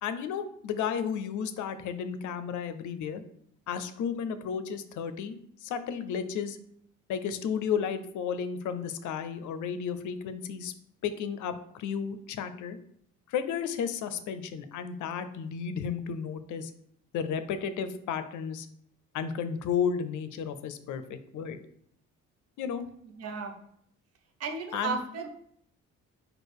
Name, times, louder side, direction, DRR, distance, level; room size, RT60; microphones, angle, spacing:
voice 1, 0.0-3.2 3.7-6.6 7.1-10.7 11.0-12.8 13.3-16.7 17.1-18.7 19.1-21.6 22.6-22.8 24.7-25.0, left 7 dB, 75° left, 11 dB, 0.5 m, -33 dB
voice 2, 23.0-23.6 24.4-25.3, right 5 dB, 55° right, 4 dB, 0.8 m, -34 dB
4.6 x 2.5 x 4.7 m, 0.68 s
cardioid pair, 90°, 30 cm